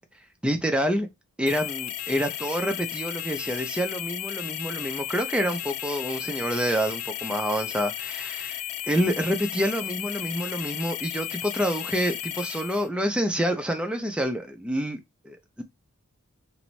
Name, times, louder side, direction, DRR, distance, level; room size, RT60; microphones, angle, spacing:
voice 1, 0.4-1.1 1.4-15.0 15.2-15.6, equal, 5° right, 0.4 m, -27 dB
sound 1, 1.5-12.9, left 11 dB, 65° left, 0.3 m, -34 dB
2.6 x 2.1 x 3.0 m
head